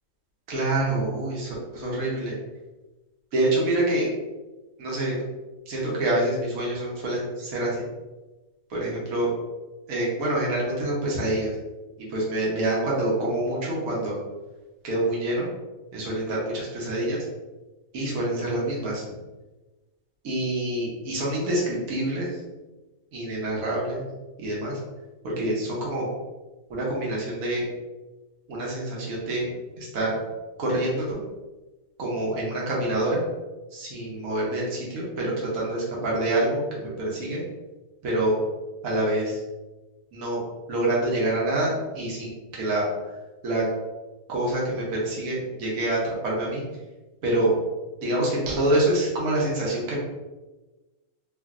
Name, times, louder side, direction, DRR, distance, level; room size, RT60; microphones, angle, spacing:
voice 1, 0.5-2.4 3.3-4.1 4.8-5.1 5.7-7.9 8.7-9.3 9.9-11.5 12.1-14.2 14.8-15.5 15.9-17.2 17.9-19.0 20.2-22.4 23.1-24.0 24.4-24.8 25.2-26.1 26.7-27.6 28.5-30.2 30.6-31.2 32.0-33.2 33.7-37.4 38.0-38.4 38.8-39.4 40.1-40.4 40.7-42.9 43.4-43.7 44.3-46.6 47.2-47.5 48.0-50.0, right 1 dB, 70° right, -4 dB, 1.3 m, -26 dB
3.2 x 2.5 x 2.4 m, 1.1 s
omnidirectional pair, 1.6 m